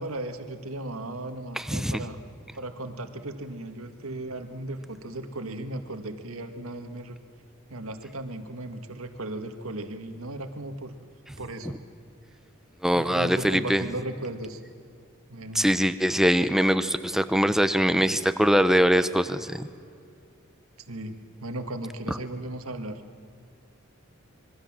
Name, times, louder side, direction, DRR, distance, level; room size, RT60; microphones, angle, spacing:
voice 1, 0.0-2.2 2.5-7.2 7.7-10.9 11.4-11.8 12.9-14.6 15.3-15.7 20.8-23.0, right 1 dB, 85° right, 7 dB, 1.8 m, -36 dB
voice 2, 1.6-2.0 12.8-13.8 15.5-19.7 22.1-22.2, equal, ahead, 11 dB, 0.8 m, -22 dB
26.0 x 22.0 x 7.5 m, 2.4 s
head